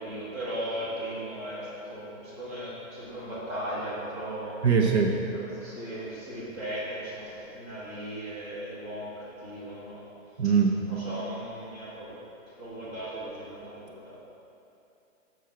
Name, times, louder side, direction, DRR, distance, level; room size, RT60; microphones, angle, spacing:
voice 1, 0.0-4.6 5.3-10.1 10.9-12.2 12.5-14.2, right 1 dB, 15° right, -8 dB, 0.9 m, -37 dB
voice 2, 4.6-5.2 10.4-10.8, right 6 dB, 55° right, 2 dB, 0.6 m, -21 dB
6.4 x 6.2 x 4.5 m, 2.8 s
hypercardioid pair, 170°, 40 cm